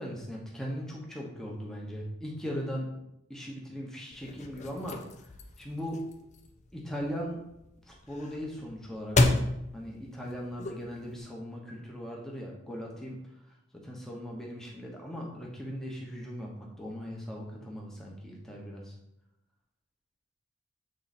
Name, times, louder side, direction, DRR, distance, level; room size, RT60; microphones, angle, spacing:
voice 1, 0.0-2.9 3.3-5.0 5.6-6.0 6.7-7.4 7.8-9.4 9.7-13.2 13.7-19.0, equal, ahead, -2 dB, 1.1 m, -39 dB
sound 1, 4.1-11.2, left 2 dB, 35° left, 0.5 m, -32 dB
7.5 x 3.9 x 4.2 m, 0.83 s
head